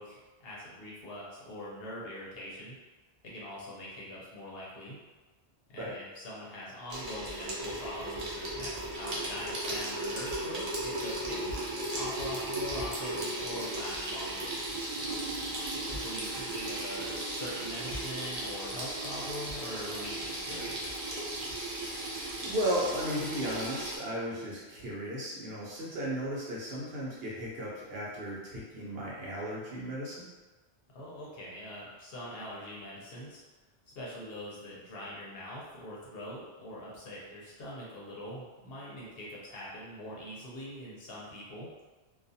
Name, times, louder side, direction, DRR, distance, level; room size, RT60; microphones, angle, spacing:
voice 1, 0.0-2.8 3.2-5.0 5.7-11.5 11.9-14.5 16.0-21.0 30.9-33.4 33.9-41.7, equal, 65° left, -5 dB, 0.9 m, -43 dB
Water tap faucet / Sink (filling or washing), 6.9-24.0, right 1 dB, 45° right, 0.6 m, -36 dB
voice 2, 22.4-30.2, equal, 65° right, -5 dB, 0.9 m, -35 dB
2.4 x 2.3 x 2.6 m, 1.2 s
omnidirectional pair, 1.1 m